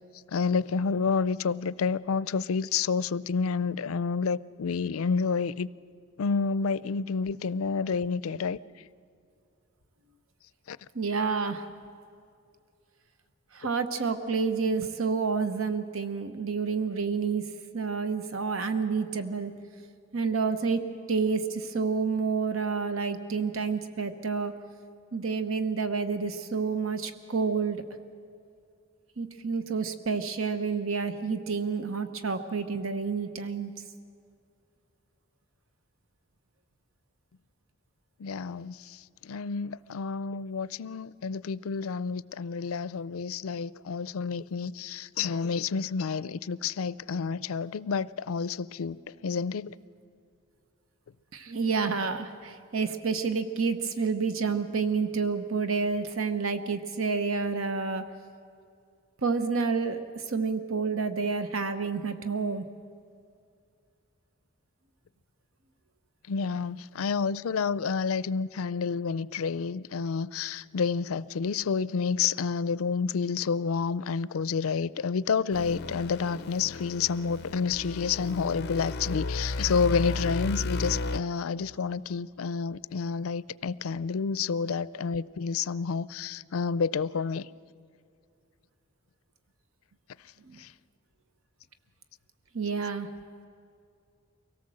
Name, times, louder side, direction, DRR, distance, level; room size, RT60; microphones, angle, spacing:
voice 1, 0.3-5.7 6.2-8.6 10.7-10.8 38.2-49.7 66.3-87.5 90.6-90.7, left 5 dB, 90° left, 0.4 m, -29 dB
voice 2, 10.9-11.7 13.5-17.5 17.7-19.5 20.1-20.8 21.1-24.5 25.1-27.8 29.2-33.7 51.3-58.0 59.2-62.6 90.5-90.6 92.5-93.1, right 5 dB, 75° right, 0.9 m, -29 dB
sound 1, 75.5-81.2, left 2 dB, 55° left, 0.7 m, -34 dB
24.0 x 17.5 x 7.7 m
head